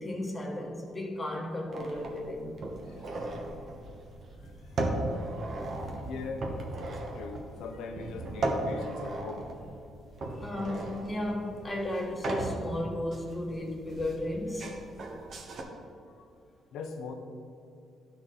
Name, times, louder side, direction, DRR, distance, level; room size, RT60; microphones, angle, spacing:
voice 1, 0.0-2.5 10.3-14.7, left 1 dB, 20° left, 0 dB, 1.3 m, -34 dB
sound 1, 1.7-15.6, right 2 dB, 55° right, 1.1 m, -37 dB
voice 2, 6.0-6.5 7.1-9.5 16.7-17.1, left 4 dB, 85° left, 5 dB, 0.7 m, -40 dB
12.0 x 4.2 x 3.9 m, 2.4 s
cardioid pair, 90°, 0 cm